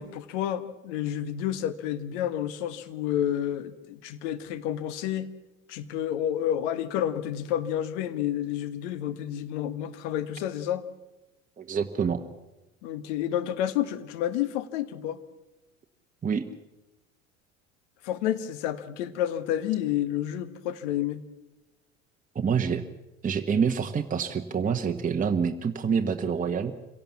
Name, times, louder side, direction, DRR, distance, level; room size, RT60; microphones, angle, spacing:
voice 1, 0.0-5.3 5.7-10.9 12.8-15.2 18.0-21.2, left 11 dB, 60° left, 13 dB, 1.5 m, -30 dB
voice 2, 11.6-12.2 16.2-16.5 22.3-22.8 23.2-26.7, right 6 dB, 20° right, 4 dB, 1.2 m, -27 dB
25.5 x 17.5 x 7.3 m, 1.0 s
figure-of-eight pair, 70°, 39 cm